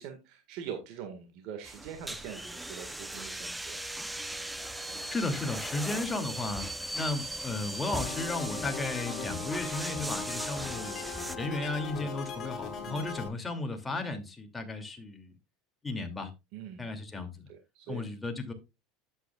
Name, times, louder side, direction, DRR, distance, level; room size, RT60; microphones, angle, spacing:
voice 1, 0.0-3.8 12.8-13.1 16.5-16.9 17.5-18.0, right 8 dB, 60° right, 1.8 m, -43 dB
sound 1, 1.6-11.4, right 1 dB, 5° right, 0.7 m, -38 dB
voice 2, 5.1-6.7 6.9-11.0 11.3-15.3 15.8-16.3 16.8-17.5 17.9-18.5, left 2 dB, 15° left, 2.6 m, -34 dB
sound 2, 8.0-13.3, left 5 dB, 40° left, 4.0 m, -39 dB
11.5 x 8.3 x 2.4 m
hypercardioid pair, 95°, 0 cm